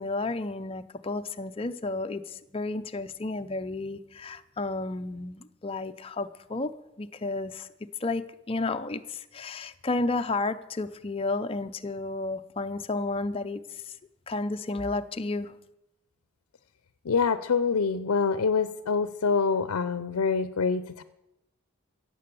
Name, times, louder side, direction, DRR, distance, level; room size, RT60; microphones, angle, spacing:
voice 1, 0.0-6.7 7.0-7.7 8.0-13.9 14.3-15.5, left 3 dB, 25° left, 8 dB, 0.5 m, -32 dB
voice 2, 17.0-21.0, left 5 dB, 80° left, 13 dB, 0.5 m, -26 dB
16.5 x 7.5 x 6.8 m, 0.93 s
head